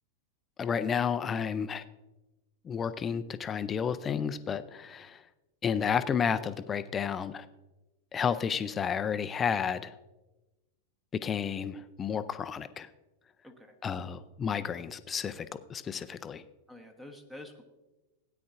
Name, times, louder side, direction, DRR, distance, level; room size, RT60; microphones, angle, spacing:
voice 1, 0.6-1.8 2.6-5.2 5.6-7.5 8.1-9.9 11.1-12.9 13.8-16.4, left 7 dB, 20° left, 13 dB, 0.5 m, -31 dB
voice 2, 13.4-13.7 16.7-17.6, left 1 dB, 5° right, 4 dB, 1.0 m, -48 dB
16.5 x 9.6 x 2.5 m, 1.1 s
figure-of-eight pair, 90°, 0 cm